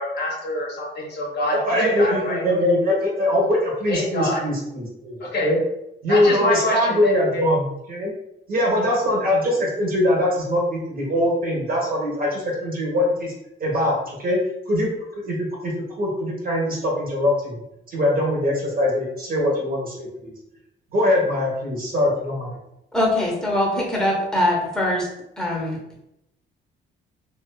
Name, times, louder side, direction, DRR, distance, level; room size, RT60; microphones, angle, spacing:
voice 1, 0.0-2.6 3.9-4.4 5.2-5.5 6.1-7.4, left 1 dB, 60° left, -2 dB, 0.8 m, -26 dB
voice 2, 1.5-5.6 6.0-8.1 8.5-13.3 13.6-14.4 14.7-14.9 15.3-15.7 16.0-17.6 17.9-20.3 20.9-22.6, left 1 dB, 45° right, -2 dB, 0.9 m, -22 dB
voice 3, 22.9-25.1 25.4-25.8, left 1 dB, 5° left, -3 dB, 0.8 m, -22 dB
2.4 x 2.3 x 2.2 m, 0.85 s
cardioid pair, 90°, 20 cm